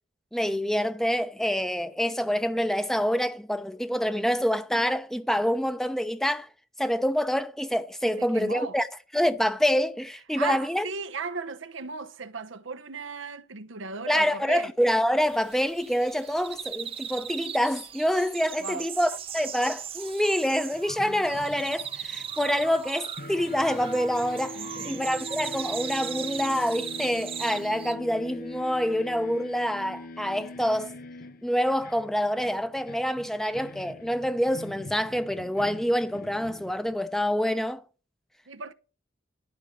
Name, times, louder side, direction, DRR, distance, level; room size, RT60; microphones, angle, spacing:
voice 1, 0.3-6.5 6.8-8.9 9.1-10.8 14.1-30.9 31.4-37.8, equal, ahead, 0.7 m, -26 dB
voice 2, 8.0-8.8 10.3-14.7 18.6-18.9 24.5-25.1 38.5-38.7, right 4 dB, 85° right, 0.9 m, -36 dB
sound 1, 15.2-28.0, right 8 dB, 30° right, 0.6 m, -38 dB
sound 2, 20.7-22.9 23.2-37.1, left 2 dB, 50° left, 0.7 m, -43 dB
12.0 x 5.2 x 8.2 m
head